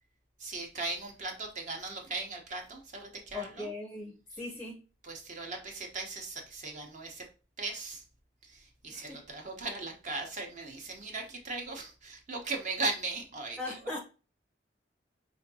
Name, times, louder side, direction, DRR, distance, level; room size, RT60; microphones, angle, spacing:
voice 1, 0.4-3.7 5.0-7.2 7.6-8.0 8.4-14.0, right 3 dB, 40° right, 2 dB, 0.8 m, -38 dB
voice 2, 3.3-4.8 8.9-9.3 13.6-14.0, left 2 dB, 5° left, 1 dB, 0.5 m, -39 dB
5.0 x 2.6 x 2.7 m, 0.34 s
head